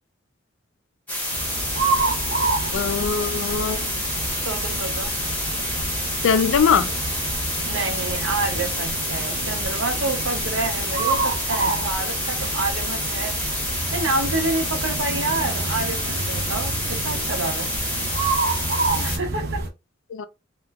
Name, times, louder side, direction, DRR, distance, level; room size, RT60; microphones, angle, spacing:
sound 1, 1.1-19.2, left 1 dB, 10° left, 0.7 m, -28 dB
sound 2, 1.3-19.7, right 3 dB, 50° right, 0.5 m, -29 dB
voice 1, 2.7-3.9 6.2-6.9 20.1-20.2, left 6 dB, 80° left, 0.4 m, -21 dB
voice 2, 4.4-5.2 7.6-13.4 13.9-17.7 18.9-19.6, right 2 dB, 80° right, 0.7 m, -28 dB
3.0 x 2.1 x 2.3 m
head